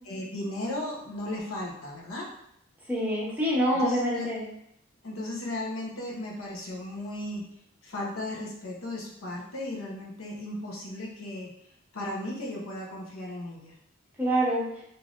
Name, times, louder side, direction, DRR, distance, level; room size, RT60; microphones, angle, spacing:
voice 1, 0.0-2.3 3.7-4.3 5.0-7.5 7.8-11.5 11.9-13.7, left 1 dB, 85° left, -3 dB, 0.8 m, -35 dB
voice 2, 2.9-4.4 14.2-14.6, equal, 10° right, -6 dB, 0.7 m, -26 dB
3.2 x 2.6 x 2.4 m, 0.76 s
head